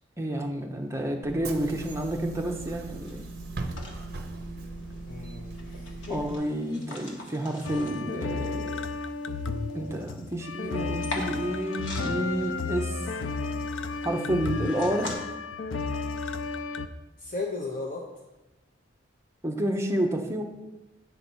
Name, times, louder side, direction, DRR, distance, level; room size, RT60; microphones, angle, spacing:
voice 1, 0.2-3.2 6.1-8.8 9.7-13.0 14.0-15.1 19.4-20.4, right 1 dB, 15° right, 2 dB, 0.7 m, -30 dB
Bus / Engine, 1.2-6.4, right 2 dB, 50° right, 0.6 m, -38 dB
sound 1, 2.0-15.1, left 2 dB, 70° left, 1.5 m, -45 dB
voice 2, 5.1-6.3 17.2-18.1, left 3 dB, 40° left, 0 dB, 0.7 m, -35 dB
sound 2, 7.6-16.9, left 3 dB, 85° left, 0.5 m, -33 dB
9.7 x 4.1 x 6.1 m, 1.0 s
head